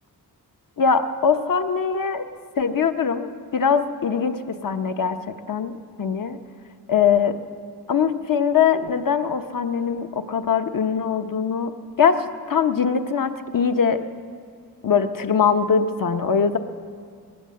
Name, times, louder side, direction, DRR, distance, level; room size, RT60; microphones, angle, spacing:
voice 1, 0.8-2.3 2.6-5.7 6.0-6.4 6.9-7.4 7.9-11.7 12.0-14.1 14.8-16.6, left 6 dB, 55° left, 8 dB, 1.1 m, -22 dB
19.5 x 18.0 x 7.7 m, 2.2 s
wide cardioid pair, 105°, 39 cm